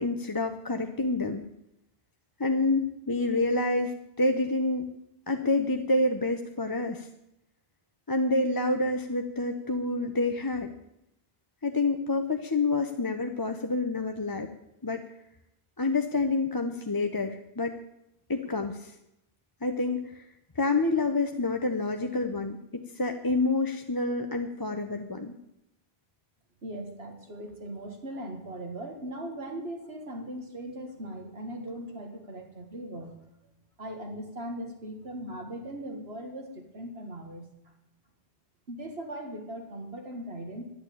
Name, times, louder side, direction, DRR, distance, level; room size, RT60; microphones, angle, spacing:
voice 1, 0.0-1.4 2.4-4.9 5.3-7.1 8.1-10.7 11.6-14.5 14.8-15.0 15.8-17.7 18.3-18.9 19.6-20.2 20.6-25.3, left 2 dB, 25° left, 5 dB, 0.8 m, -28 dB
voice 2, 26.6-33.2 33.8-37.5 38.7-40.7, right 1 dB, 75° right, 3 dB, 2.1 m, -39 dB
11.0 x 11.0 x 8.6 m, 0.82 s
omnidirectional pair, 1.1 m